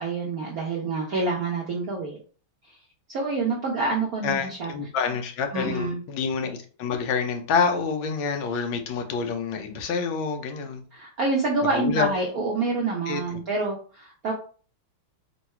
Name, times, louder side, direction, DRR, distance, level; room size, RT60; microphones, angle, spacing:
voice 1, 0.0-2.2 3.1-4.7 5.5-6.0 10.9-14.3, right 3 dB, 65° right, -2 dB, 0.9 m, -27 dB
voice 2, 4.2-10.8 11.7-12.1 13.1-13.4, left 5 dB, 70° left, 4 dB, 1.4 m, -27 dB
3.8 x 2.3 x 4.2 m, 0.39 s
omnidirectional pair, 2.4 m